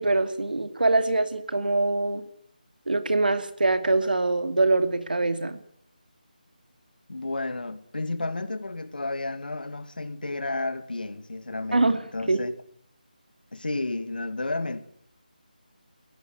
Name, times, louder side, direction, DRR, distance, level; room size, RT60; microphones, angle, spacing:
voice 1, 0.0-2.2 2.9-5.6 11.7-12.0 12.3-12.4, right 2 dB, 75° right, 2.6 m, -23 dB
voice 2, 7.1-12.5 13.5-14.8, left 2 dB, 80° left, 2.3 m, -32 dB
20.5 x 16.5 x 9.4 m
figure-of-eight pair, 170°, 5 cm